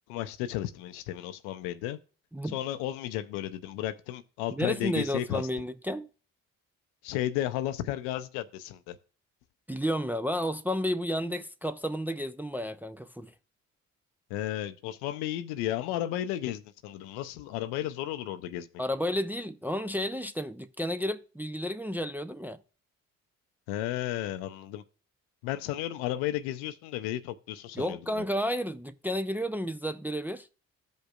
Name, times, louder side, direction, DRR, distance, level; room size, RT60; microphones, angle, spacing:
voice 1, 0.1-2.0 2.5-5.5 7.0-9.0 14.3-18.7 23.7-24.8 25.4-28.2, left 13 dB, 75° left, 0.6 m, -33 dB
voice 2, 4.5-6.1 9.7-13.3 18.8-22.6 27.7-30.5, equal, 5° right, 0.4 m, -32 dB
15.0 x 5.2 x 2.4 m
hypercardioid pair, 40°, 40 cm